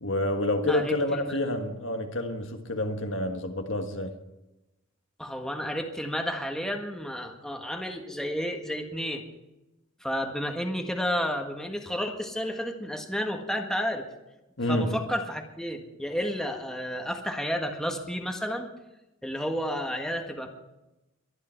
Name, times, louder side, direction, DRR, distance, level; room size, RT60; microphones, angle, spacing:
voice 1, 0.0-4.1 14.6-15.0, left 1 dB, 65° left, 1.6 m, -28 dB
voice 2, 0.7-1.4 5.2-9.2 10.0-14.0 14.7-18.7 19.2-20.6, equal, 5° left, 1.6 m, -31 dB
23.0 x 10.5 x 4.6 m
head